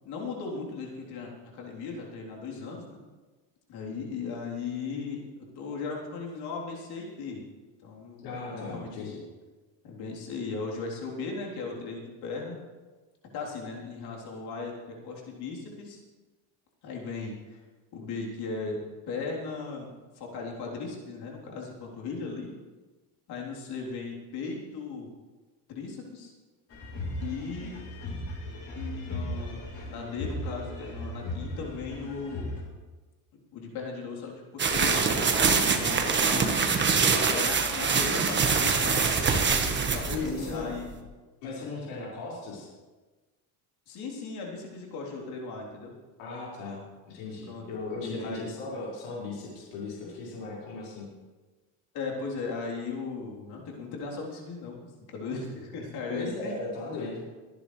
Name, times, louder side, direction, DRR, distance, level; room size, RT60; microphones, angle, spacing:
voice 1, 0.0-3.0 3.7-5.2 5.6-7.4 7.8-9.1 9.8-12.6 13.3-16.0 16.8-17.6 17.9-18.8 19.1-19.9 20.1-22.5 23.3-25.1 25.7-26.3 27.2-27.8 28.8-32.5 33.5-36.8 37.3-39.2 39.9-40.9 41.6-41.7 43.9-45.9 47.4-47.6 48.0-48.5 51.9-54.8 55.1-56.6, left 4 dB, 65° left, -2 dB, 3.7 m, -37 dB
voice 2, 8.2-9.2 40.1-40.8 41.4-42.7 46.2-51.1 56.1-57.3, left 3 dB, 90° left, -6 dB, 5.1 m, -37 dB
sound 1, 26.7-32.6, left 1 dB, 35° left, 4.1 m, -37 dB
sound 2, 34.6-41.0, right 5 dB, 25° right, 1.5 m, -24 dB
22.5 x 10.5 x 3.3 m, 1.3 s
cardioid pair, 125°, 41 cm